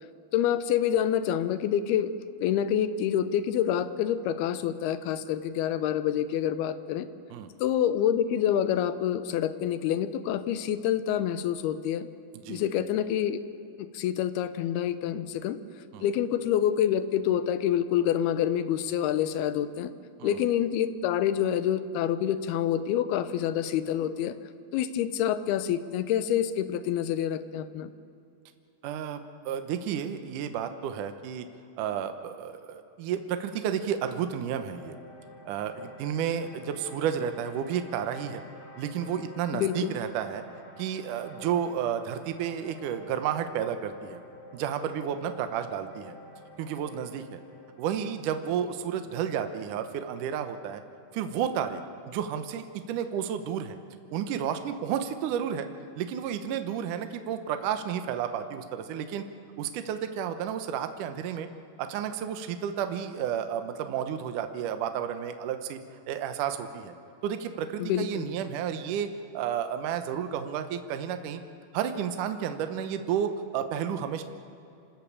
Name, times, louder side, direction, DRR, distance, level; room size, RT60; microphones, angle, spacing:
voice 1, 0.3-2.1 2.4-7.1 7.6-12.1 12.5-13.4 13.8-15.6 16.0-19.9 20.2-24.4 24.7-27.9 39.5-40.0 67.8-68.3, left 10 dB, 85° left, 13 dB, 2.8 m, -27 dB
voice 2, 28.8-31.5 31.8-35.0 35.5-38.4 38.8-40.4 40.8-44.2 44.5-46.1 46.6-47.4 47.8-50.8 51.1-51.8 52.1-53.8 54.1-55.7 56.0-59.2 59.6-61.5 61.8-65.8 66.1-66.9 67.2-69.1 69.3-71.4 71.7-74.2, right 8 dB, 70° right, 8 dB, 2.2 m, -31 dB
sound 1, 34.8-51.0, left 1 dB, 50° left, 3.9 m, -50 dB
27.0 x 13.5 x 8.7 m, 2.7 s
omnidirectional pair, 4.5 m